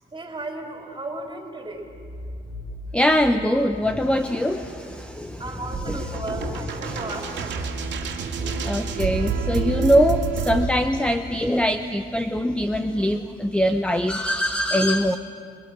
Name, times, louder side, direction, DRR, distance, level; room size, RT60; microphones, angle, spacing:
voice 1, 0.1-1.9 5.4-7.6, right 2 dB, 25° right, 1 dB, 3.7 m, -35 dB
sound 1, 1.7-3.1 3.6-10.6, left 3 dB, 50° left, 7.8 m, -40 dB
voice 2, 2.9-5.4 5.9-15.2, equal, 5° left, 8 dB, 0.8 m, -23 dB
sound 2, 5.7-10.7, right 5 dB, 65° right, 2.5 m, -28 dB
27.0 x 21.0 x 6.2 m, 2.5 s
cardioid pair, 90°, 20 cm